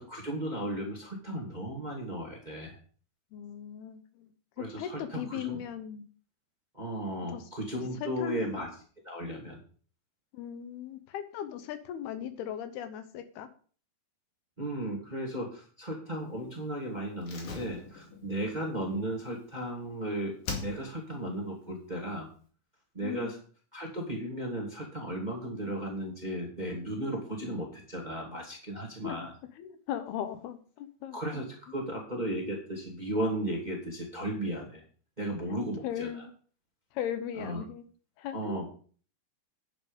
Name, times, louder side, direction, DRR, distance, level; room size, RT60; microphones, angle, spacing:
voice 1, 0.0-2.8 4.6-5.6 6.7-8.7 9.0-9.6 14.6-22.3 22.9-23.4 23.7-29.3 31.1-34.8 35.2-36.3 37.4-37.6 38.3-38.6, right 1 dB, 15° right, 0 dB, 2.0 m, -35 dB
voice 2, 3.3-4.3 4.6-6.0 7.3-7.4 8.2-8.6 10.3-13.5 23.0-23.3 29.0-29.2 29.6-31.2 35.5-35.6 35.8-36.3 36.9-37.8 38.2-38.6, left 10 dB, 75° left, 10 dB, 2.9 m, -38 dB
Slam, 17.2-20.0 20.4-21.2 21.5-21.6, left 4 dB, 55° left, 3.4 m, -41 dB
10.0 x 9.7 x 5.2 m, 0.42 s
omnidirectional pair, 4.7 m